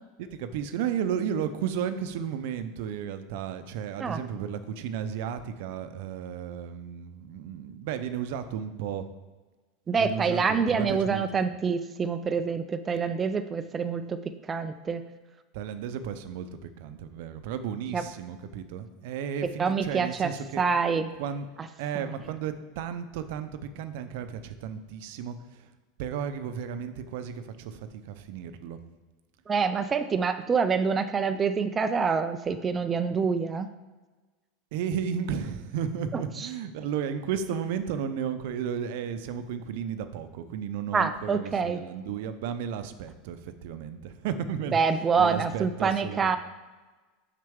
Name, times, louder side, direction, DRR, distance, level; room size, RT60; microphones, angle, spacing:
voice 1, 0.3-9.1 10.0-11.2 15.5-20.6 21.2-21.5 21.8-25.7 26.0-28.8 34.7-44.8 45.2-46.3, right 8 dB, 70° right, 10 dB, 0.5 m, -33 dB
voice 2, 9.9-14.2 14.5-15.1 17.9-18.0 19.6-20.3 20.6-21.1 29.5-33.7 36.1-36.5 40.9-41.8 44.7-46.4, right 5 dB, 25° right, 9 dB, 0.3 m, -26 dB
6.3 x 5.7 x 3.5 m, 1.2 s
supercardioid pair, 125°, 0 cm